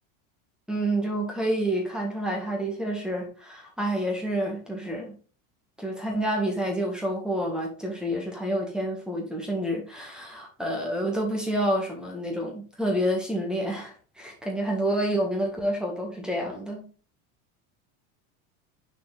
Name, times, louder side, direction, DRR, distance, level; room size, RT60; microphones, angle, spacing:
voice 1, 0.7-5.1 5.8-16.9, right 1 dB, ahead, 1.6 m, -28 dB
6.3 x 4.2 x 3.9 m
supercardioid pair, 130°, 37 cm